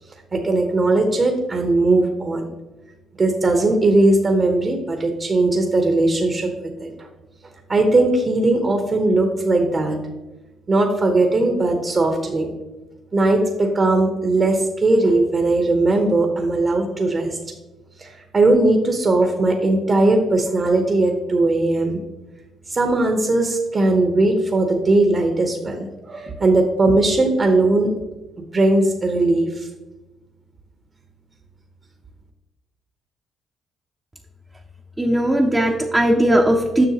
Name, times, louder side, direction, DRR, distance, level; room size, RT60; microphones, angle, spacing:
voice 1, 0.3-2.5 3.2-6.5 6.8-6.9 7.7-10.0 10.7-12.5 13.1-17.4 18.0-22.0 22.7-27.9 28.5-29.7, right 2 dB, 40° right, 3 dB, 0.9 m, -19 dB
voice 2, 35.0-36.8, right 1 dB, 15° right, 0 dB, 0.7 m, -18 dB
7.6 x 6.1 x 2.9 m, 1.1 s
cardioid pair, 90°, 0 cm